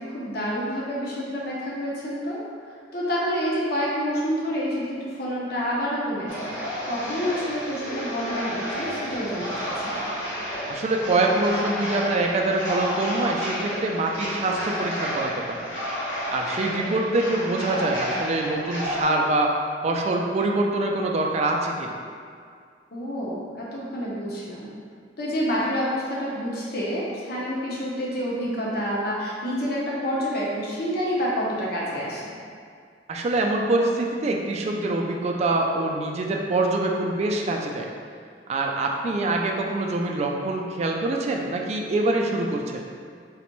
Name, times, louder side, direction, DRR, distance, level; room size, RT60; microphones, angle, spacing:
voice 1, 0.0-2.4 2.9-6.5 6.9-10.1 22.9-24.7 25.2-32.4, equal, 55° left, -6 dB, 0.7 m, -28 dB
sound 1, 6.3-19.0, equal, 80° left, 1.0 m, -31 dB
voice 2, 10.7-15.7 16.3-19.5 19.8-21.9 33.1-37.9 38.5-42.8, right 2 dB, 35° right, 1 dB, 0.3 m, -25 dB
3.9 x 2.2 x 3.0 m, 2.2 s
head